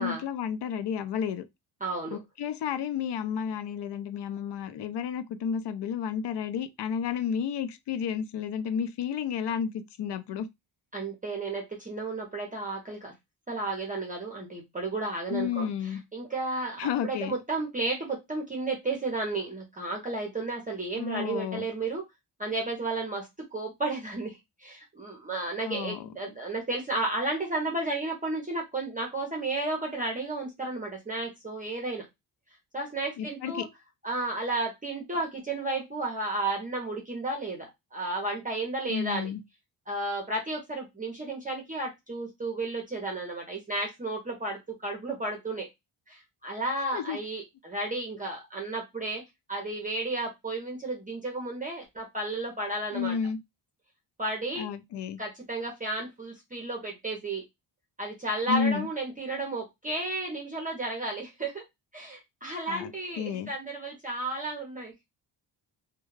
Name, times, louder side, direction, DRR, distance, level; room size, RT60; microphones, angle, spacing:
voice 1, 0.0-1.4 2.1-10.5 15.3-16.0 16.8-17.3 21.0-21.7 25.6-26.1 33.2-33.7 38.9-39.4 46.9-47.2 52.9-53.4 54.6-55.2 58.5-58.9 62.7-62.9 63.2-63.5, left 7 dB, 70° left, 0.5 m, -31 dB
voice 2, 1.8-2.2 10.9-13.1 13.5-22.0 22.4-32.1 32.7-33.7 34.0-39.3 39.9-45.7 46.1-49.2 49.5-53.2 54.2-54.7 55.2-57.4 58.0-61.6 61.9-64.9, right 2 dB, 20° right, 0.7 m, -33 dB
2.3 x 2.2 x 3.1 m
wide cardioid pair, 135°, 44 cm